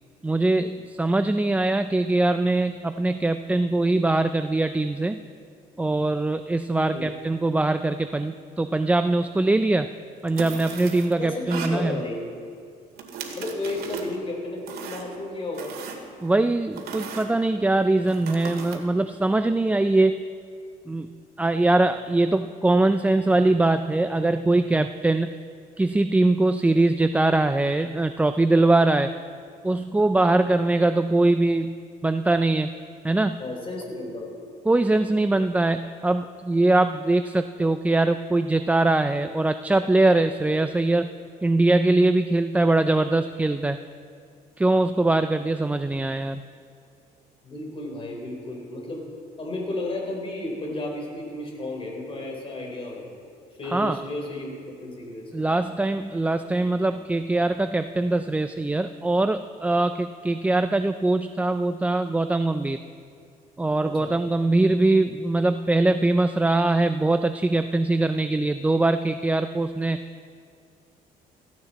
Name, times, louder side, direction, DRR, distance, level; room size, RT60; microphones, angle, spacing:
voice 1, 0.2-5.2 5.8-9.9 10.2-12.0 16.2-20.2 20.9-21.1 21.4-25.3 25.8-29.1 29.6-31.8 32.0-32.7 33.0-33.4 34.7-41.1 41.4-43.8 44.6-46.4 53.7-54.0 55.3-62.8 63.6-70.0, right 2 dB, 10° right, 9 dB, 0.4 m, -22 dB
voice 2, 6.7-7.0 11.2-12.3 13.4-15.7 33.4-34.4 47.4-49.0 49.4-53.1 53.6-55.3 63.8-64.1, left 2 dB, 30° left, 0 dB, 3.8 m, -33 dB
sound 1, 10.3-11.1 11.5-11.8 13.0-14.2 14.7-15.2 15.5-16.3 16.8-17.3 18.1-18.8, right 5 dB, 65° right, 2.1 m, -36 dB
16.5 x 15.0 x 4.1 m, 2.2 s
cardioid pair, 110°, 17 cm